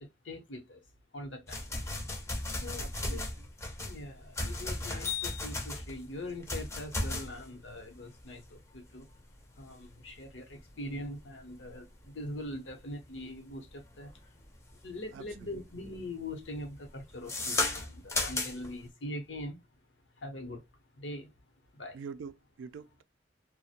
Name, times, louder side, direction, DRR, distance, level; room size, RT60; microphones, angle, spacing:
voice 1, 0.2-0.8 1.1-1.8 2.6-3.2 3.8-9.1 9.6-14.1 14.8-19.6 20.2-20.6 21.0-21.3 21.7-22.0, left 1 dB, 75° left, 0.8 m, -42 dB
sound 1, 1.5-14.8 15.2-15.6 15.9-18.8, left 2 dB, 15° left, 0.5 m, -36 dB
voice 2, 2.8-3.2 15.1-15.5 21.9-23.0, right 6 dB, 90° right, 0.3 m, -45 dB
2.4 x 2.1 x 2.7 m
head